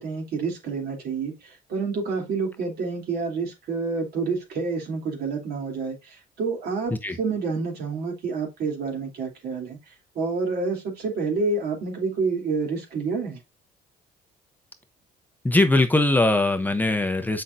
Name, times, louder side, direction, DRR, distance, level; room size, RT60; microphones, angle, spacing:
voice 1, 0.0-6.9 7.2-9.8 10.1-13.4, right 4 dB, 65° right, 3.2 m, -28 dB
voice 2, 15.4-17.4, left 2 dB, 10° left, 0.7 m, -21 dB
7.5 x 5.8 x 2.6 m
cardioid pair, 110°, 17 cm